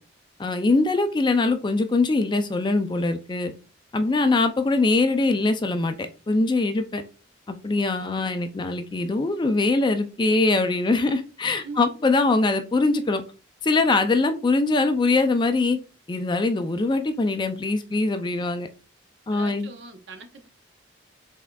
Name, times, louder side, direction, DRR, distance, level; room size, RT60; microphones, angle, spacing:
voice 1, 0.4-3.5 3.9-6.0 6.3-7.0 7.6-13.2 13.6-15.8 16.1-18.7 19.3-19.7, left 3 dB, 25° left, 0.4 m, -22 dB
voice 2, 11.6-12.0 19.3-20.5, right 4 dB, 65° right, 0.8 m, -41 dB
5.5 x 3.5 x 2.3 m
head